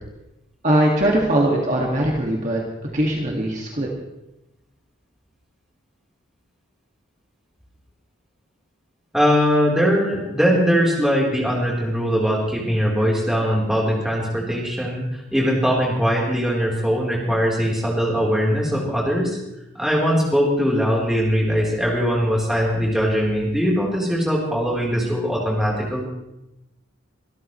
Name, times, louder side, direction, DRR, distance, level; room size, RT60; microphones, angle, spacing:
voice 1, 0.6-2.6 2.9-3.9, right 1 dB, 35° right, -1 dB, 2.1 m, -20 dB
voice 2, 9.1-19.4 19.8-26.0, equal, ahead, -4 dB, 3.8 m, -21 dB
25.0 x 13.5 x 3.2 m, 0.91 s
head